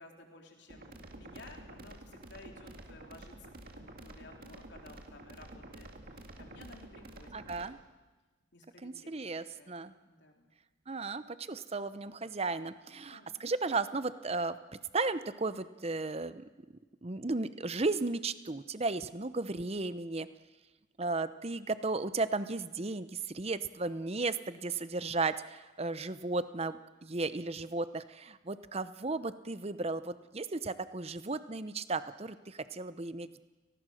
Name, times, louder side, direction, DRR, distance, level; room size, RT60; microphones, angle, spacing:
voice 1, 0.0-7.4 8.5-9.2 9.5-10.5 12.9-13.5, left 2 dB, 60° left, 2 dB, 3.7 m, -55 dB
sound 1, 0.7-7.7, right 1 dB, 45° right, 2.2 m, -50 dB
voice 2, 7.3-7.8 8.8-9.9 10.9-14.6 14.9-16.4 17.0-20.3 21.0-33.4, right 3 dB, 30° right, 13 dB, 0.8 m, -35 dB
30.0 x 19.0 x 6.5 m, 1.2 s
head